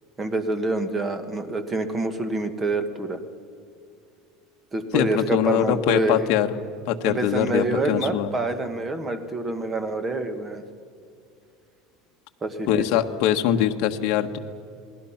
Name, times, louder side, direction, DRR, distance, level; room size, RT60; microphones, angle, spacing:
voice 1, 0.2-3.2 4.7-6.2 7.0-10.6 12.4-12.8, right 2 dB, 15° right, 9 dB, 1.5 m, -27 dB
voice 2, 4.9-6.5 6.9-8.3 12.7-14.4, left 11 dB, 55° left, 4 dB, 1.4 m, -22 dB
28.5 x 20.5 x 5.8 m, 2.4 s
cardioid pair, 170°, 0 cm